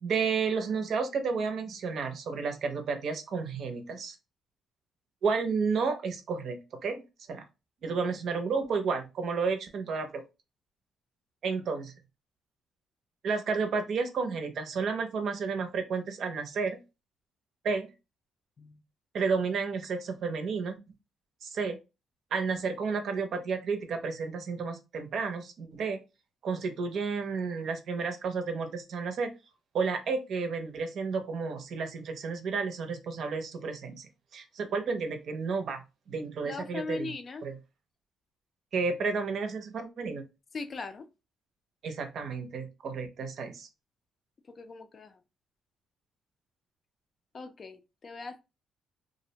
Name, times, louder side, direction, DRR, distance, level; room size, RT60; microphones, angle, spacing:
voice 1, 0.0-4.2 5.2-7.0 7.3-7.4 7.8-10.2 11.4-11.9 13.2-16.8 17.6-17.9 19.1-20.8 21.4-21.8 22.3-26.0 26.4-29.3 29.7-35.8 36.1-37.1 37.4-37.6 38.7-40.2 41.8-43.7, right 5 dB, 65° right, 0.6 m, -31 dB
voice 2, 36.4-37.4 40.5-41.1 44.5-45.2 47.3-48.4, left 3 dB, 45° left, 0.4 m, -40 dB
2.4 x 2.0 x 2.7 m
cardioid pair, 90°, 0 cm